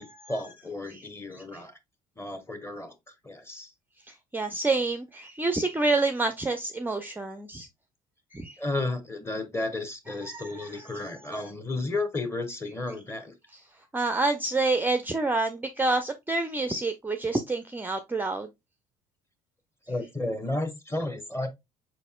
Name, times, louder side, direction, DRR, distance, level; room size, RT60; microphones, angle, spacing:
voice 1, 0.0-1.8 2.2-2.9 3.2-3.7 8.6-13.3 19.9-21.5, left 2 dB, 15° left, 1.1 m, -33 dB
voice 2, 0.9-1.6 4.1-7.7 8.3-8.6 10.2-11.4 13.5-13.6 13.9-18.5, right 3 dB, 10° right, 0.5 m, -28 dB
4.8 x 4.1 x 2.2 m
hypercardioid pair, 55°, 18 cm